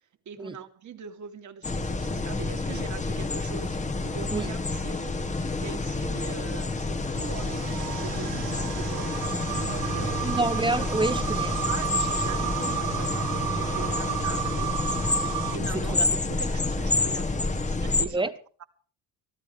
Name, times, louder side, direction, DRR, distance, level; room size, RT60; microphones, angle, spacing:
voice 1, 0.3-10.4 11.6-14.8 15.5-18.3 18.6-18.7, right 7 dB, 50° right, 2.7 m, -42 dB
sound 1, 1.6-18.1, left 3 dB, 20° left, 1.6 m, -29 dB
sound 2, 7.1-15.6, right 12 dB, 70° right, 1.4 m, -32 dB
voice 2, 10.2-11.6 15.9-16.1 18.1-18.3, right 2 dB, 15° right, 1.3 m, -27 dB
24.5 x 14.5 x 3.4 m
cardioid pair, 115°, 38 cm